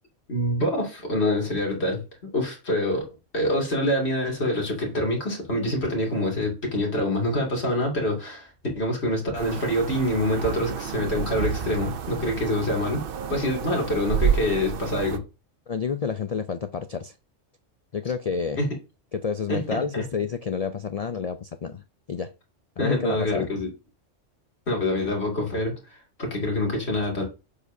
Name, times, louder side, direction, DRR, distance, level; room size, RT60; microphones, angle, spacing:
voice 1, 0.3-2.0 2.3-3.0 3.3-8.5 8.7-13.0 13.3-15.2 18.6-18.7 19.5-20.0 22.8-23.7 24.7-27.2, left 1 dB, 55° left, 0 dB, 2.8 m, -26 dB
sound 1, 9.4-15.2, right 8 dB, 55° right, 0.7 m, -30 dB
voice 2, 15.7-17.1 17.9-18.6 19.1-21.8 22.1-22.3 22.8-23.5, left 6 dB, 80° left, 10 dB, 0.3 m, -29 dB
8.3 x 7.0 x 2.7 m, 0.29 s
omnidirectional pair, 1.3 m